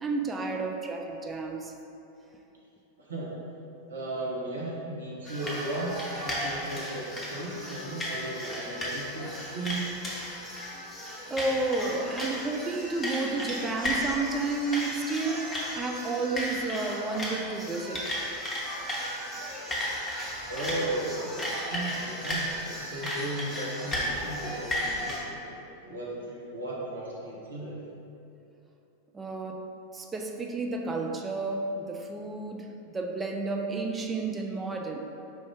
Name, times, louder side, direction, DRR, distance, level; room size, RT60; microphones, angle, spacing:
voice 1, 0.0-1.7 3.7-3.8 11.3-18.2 29.1-29.7 29.9-35.0, right 3 dB, 15° right, 2 dB, 0.3 m, -31 dB
voice 2, 3.0-3.3 3.9-9.8 20.5-25.6 25.8-27.8, right 2 dB, 70° right, -5 dB, 0.8 m, -35 dB
sound 1, 5.2-25.2, equal, 15° left, 0.9 m, -34 dB
4.8 x 2.5 x 3.4 m, 2.7 s
figure-of-eight pair, 90°, 0 cm